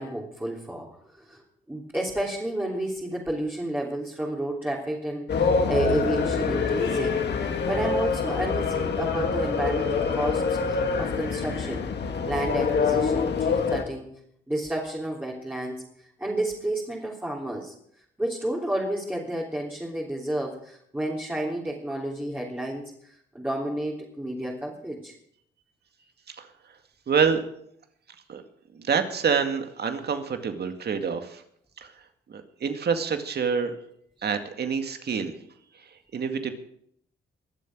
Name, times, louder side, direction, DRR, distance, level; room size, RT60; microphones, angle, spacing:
voice 1, 0.0-11.8 12.3-14.2 14.5-17.7 18.2-22.9 23.3-25.1, right 1 dB, 10° right, -4 dB, 3.4 m, -31 dB
sound 1, 5.3-13.8, left 5 dB, 60° left, 2.2 m, -25 dB
voice 2, 27.1-27.4 28.3-28.4 28.7-31.4 31.8-31.9 32.3-33.7 34.2-35.4 36.1-36.5, right 6 dB, 55° right, 7 dB, 2.1 m, -27 dB
22.5 x 7.7 x 6.2 m, 0.69 s
cardioid pair, 85°, 20 cm